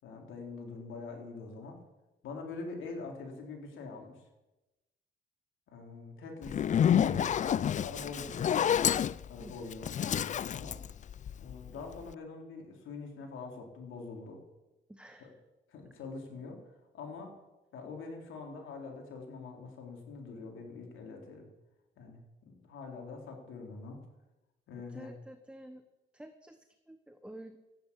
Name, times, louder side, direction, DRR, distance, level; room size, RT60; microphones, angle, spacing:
voice 1, 0.0-1.8 2.2-4.2 5.7-8.7 9.3-10.8 11.4-14.4 15.2-15.3 15.7-16.6 16.9-17.4 17.7-21.5 22.0-24.0 24.7-25.1, left 4 dB, 80° left, 2 dB, 3.8 m, -44 dB
Zipper (clothing), 6.4-11.7, left 9 dB, 40° left, 0.4 m, -29 dB
voice 2, 14.9-15.4 24.9-25.8 26.1-27.6, right 1 dB, 5° right, 8 dB, 1.0 m, -50 dB
13.5 x 9.7 x 8.4 m, 1.0 s
cardioid pair, 90°, 20 cm